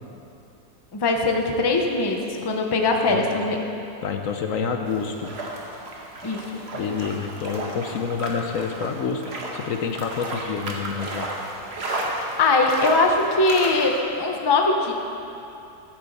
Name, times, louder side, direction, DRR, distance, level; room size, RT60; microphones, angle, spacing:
voice 1, 0.9-3.6 6.2-6.6 12.0-14.9, left 3 dB, 20° left, 2 dB, 0.6 m, -21 dB
voice 2, 4.0-5.3 6.7-9.2 9.5-11.3, left 6 dB, 65° left, 5 dB, 1.0 m, -28 dB
sound 1, 4.9-14.0, right 2 dB, 45° right, 1.5 m, -33 dB
13.5 x 10.0 x 4.1 m, 2.8 s
omnidirectional pair, 1.6 m